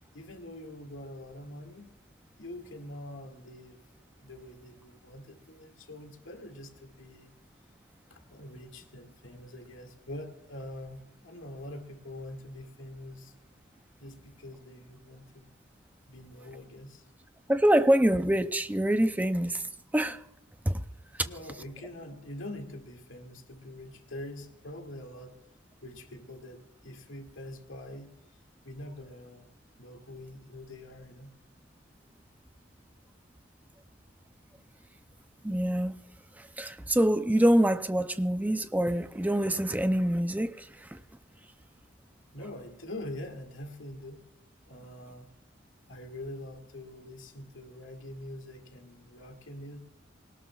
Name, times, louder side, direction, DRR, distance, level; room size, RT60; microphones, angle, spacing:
voice 1, 0.1-2.0 2.4-3.8 4.2-7.3 8.1-13.3 14.0-15.5 16.1-17.1 21.2-25.4 25.8-28.2 28.6-29.5 29.8-31.3 42.3-44.3 44.7-45.3 45.9-49.8, left 1 dB, 85° left, 2.2 m, -44 dB
voice 2, 17.5-19.6 19.9-20.2 20.7-20.8 35.4-35.9 36.4-41.0, right 1 dB, 10° right, 0.6 m, -25 dB
21.0 x 18.5 x 2.4 m
head